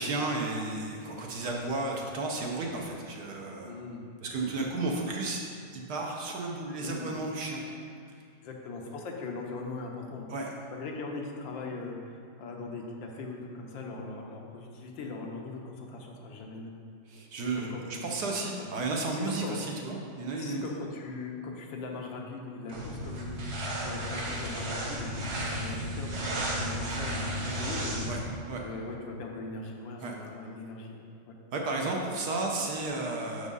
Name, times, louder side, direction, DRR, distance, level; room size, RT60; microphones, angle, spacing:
voice 1, 0.0-3.7 4.2-5.4 5.7-7.6 10.3-10.5 17.1-20.6 28.1-28.2 28.5-28.6 30.0-30.2 31.5-33.5, right 2 dB, 65° right, 0 dB, 1.2 m, -33 dB
voice 2, 3.6-4.0 6.8-7.2 8.4-16.8 17.6-18.1 18.6-18.7 19.1-19.6 20.4-23.4 23.8-28.1 28.6-31.3, left 3 dB, 80° left, 0 dB, 1.6 m, -40 dB
sound 1, 22.7-28.3, equal, 45° right, 1.0 m, -33 dB
6.4 x 4.8 x 5.3 m, 2.3 s
omnidirectional pair, 2.1 m